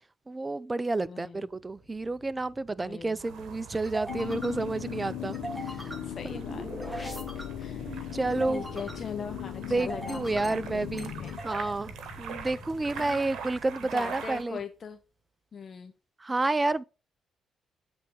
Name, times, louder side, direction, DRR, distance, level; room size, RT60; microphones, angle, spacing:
voice 1, 0.3-5.4 6.3-6.4 7.9-8.6 9.7-11.1 11.4-11.9 12.2-14.6 16.2-16.8, right 2 dB, 20° right, 0.4 m, -30 dB
voice 2, 1.1-1.5 2.8-3.2 6.0-6.7 7.0-8.2 8.5-11.5 12.9-13.4 13.8-15.0 15.5-15.9, left 6 dB, 45° left, 0.7 m, -41 dB
sound 1, 1.5-14.3, right 1 dB, 5° right, 1.6 m, -43 dB
sound 2, 3.2-14.4, right 6 dB, 75° right, 0.9 m, -44 dB
sound 3, 4.1-11.4, left 12 dB, 80° left, 0.7 m, -38 dB
8.2 x 3.4 x 5.2 m
cardioid pair, 90°, 0 cm